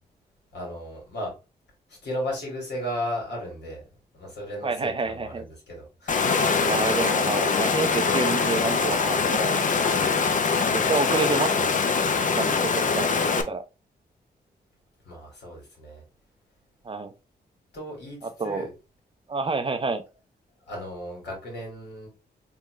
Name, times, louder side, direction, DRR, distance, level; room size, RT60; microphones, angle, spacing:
voice 1, 0.5-1.3 1.9-3.8 4.1-6.5 12.8-13.2 15.0-16.0 17.7-18.7 20.7-22.1, equal, 80° left, 2.4 m, -35 dB
voice 2, 4.6-5.5 6.6-9.6 10.6-11.7 12.3-13.1 13.4-13.6 16.8-17.1 18.4-18.7 19.3-20.0, right 4 dB, 30° right, 0.4 m, -28 dB
Water, 6.1-13.4, left 5 dB, 50° left, 0.6 m, -23 dB
3.7 x 3.0 x 3.1 m
cardioid pair, 90°, 17 cm